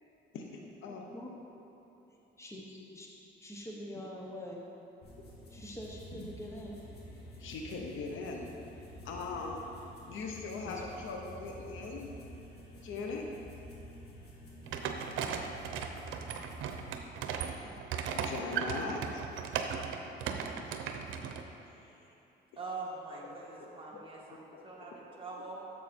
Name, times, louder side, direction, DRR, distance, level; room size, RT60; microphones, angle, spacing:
voice 1, 0.3-1.1 2.8-2.9 6.1-6.3 7.4-8.5 9.0-9.6 10.1-12.1 12.8-13.3 17.4-17.7 18.1-19.2 20.7-20.8 21.7-22.0 23.2-23.7 24.3-24.6, left 4 dB, 80° left, 1 dB, 1.1 m, -41 dB
voice 2, 0.9-1.6 2.4-3.1 3.4-4.6 5.5-6.8 10.6-10.8 17.6-17.8, equal, 15° left, -2 dB, 1.2 m, -45 dB
sound 1, 5.0-17.0, equal, 55° left, 2.2 m, -50 dB
sound 2, 14.7-21.4, right 7 dB, 85° right, 0.7 m, -37 dB
voice 3, 22.6-24.2 24.6-24.9 25.2-25.6, right 3 dB, 25° right, -5 dB, 2.1 m, -42 dB
11.0 x 7.3 x 4.4 m, 3.0 s
cardioid pair, 90°, 20 cm